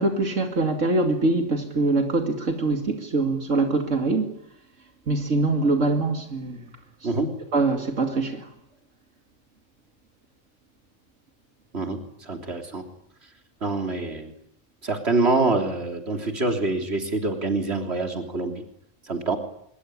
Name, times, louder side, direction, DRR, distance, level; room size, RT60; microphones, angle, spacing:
voice 1, 0.0-4.3 5.1-6.6 7.5-8.5, right 3 dB, 85° right, 5 dB, 2.9 m, -23 dB
voice 2, 12.3-12.8 13.6-14.3 14.8-18.6 19.1-19.4, right 3 dB, 60° right, 5 dB, 3.7 m, -25 dB
25.0 x 22.0 x 10.0 m, 0.74 s
omnidirectional pair, 1.3 m